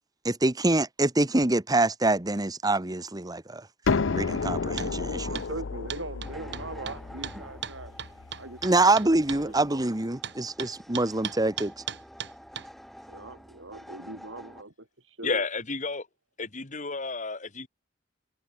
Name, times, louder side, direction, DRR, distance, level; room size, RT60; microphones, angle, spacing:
voice 1, 0.2-3.7 4.1-5.4 8.6-11.7, right 2 dB, 20° right, 1.2 m, -25 dB
sound 1, 3.9-9.4, left 4 dB, 80° left, 0.7 m, -32 dB
sound 2, 4.8-4.9 5.4-5.5 5.9-9.4 10.2-12.7, right 8 dB, 65° right, 3.8 m, -37 dB
voice 2, 5.2-7.9 8.4-9.8 13.1-15.4, right 2 dB, 90° right, 4.3 m, -41 dB
sound 3, 6.2-14.6, equal, ahead, 4.4 m, -48 dB
voice 3, 15.2-16.1 16.4-17.7, left 4 dB, 40° left, 2.5 m, -31 dB
head